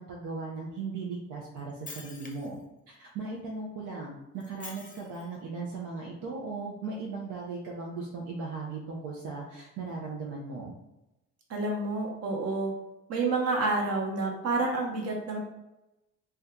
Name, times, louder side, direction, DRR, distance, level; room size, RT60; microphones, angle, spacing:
voice 1, 0.0-2.6 2.9-10.7, right 4 dB, 80° right, -2 dB, 0.6 m, -37 dB
Shatter, 1.6-2.6 4.4-5.3, left 4 dB, 25° left, 0.6 m, -46 dB
voice 2, 11.5-12.7 13.1-15.4, right 3 dB, 55° right, 0 dB, 0.9 m, -29 dB
2.7 x 2.2 x 3.5 m, 0.95 s
cardioid pair, 90°, 30 cm